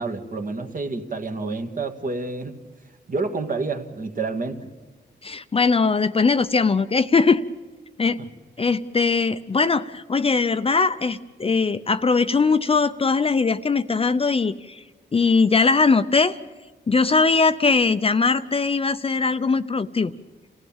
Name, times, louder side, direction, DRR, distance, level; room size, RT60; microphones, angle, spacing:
voice 1, 0.0-2.6 3.1-4.6 8.2-8.3, right 3 dB, 45° right, 6 dB, 1.9 m, -29 dB
voice 2, 5.2-7.4 8.0-8.2 8.6-14.8 15.1-16.4 16.9-20.1, left 4 dB, 30° left, 11 dB, 0.6 m, -20 dB
28.0 x 16.0 x 7.3 m, 1.3 s
wide cardioid pair, 105°, 18 cm